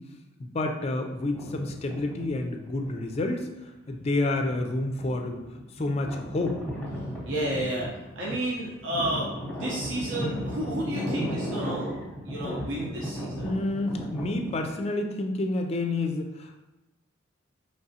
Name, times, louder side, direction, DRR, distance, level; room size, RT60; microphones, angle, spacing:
voice 1, 0.0-3.5 3.9-5.4 5.7-6.6 13.4-16.6, left 2 dB, 30° left, 4 dB, 0.4 m, -29 dB
sound 1, 1.2-3.4 3.9-14.7, equal, 10° left, 0.8 m, -35 dB
voice 2, 7.2-7.9 8.2-11.9 12.2-13.5, right 1 dB, 65° right, -5 dB, 0.7 m, -31 dB
4.7 x 3.2 x 2.8 m, 1.0 s
head